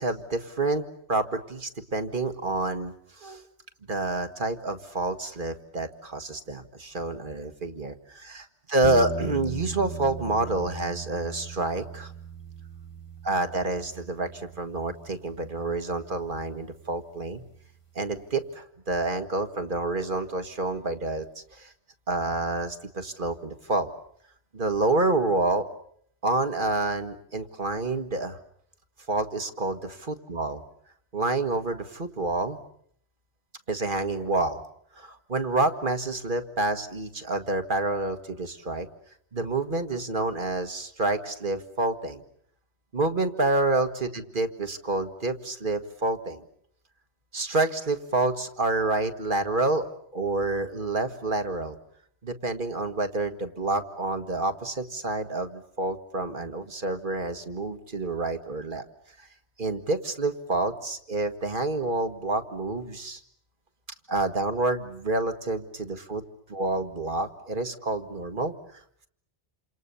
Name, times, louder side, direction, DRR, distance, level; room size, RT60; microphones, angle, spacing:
voice 1, 0.0-3.4 3.9-12.1 13.2-17.4 18.0-21.7 22.1-23.9 24.5-25.6 26.2-28.4 29.1-30.6 31.1-32.6 33.7-34.6 35.0-38.9 39.3-42.2 42.9-46.4 47.3-51.8 52.2-58.9 59.2-59.3 59.6-63.2 64.1-66.2 66.5-68.5, right 2 dB, 50° right, 8 dB, 1.9 m, -28 dB
sound 1, 8.8-17.8, right 6 dB, 30° left, 1.9 m, -40 dB
28.5 x 27.5 x 7.0 m, 0.66 s
omnidirectional pair, 1.1 m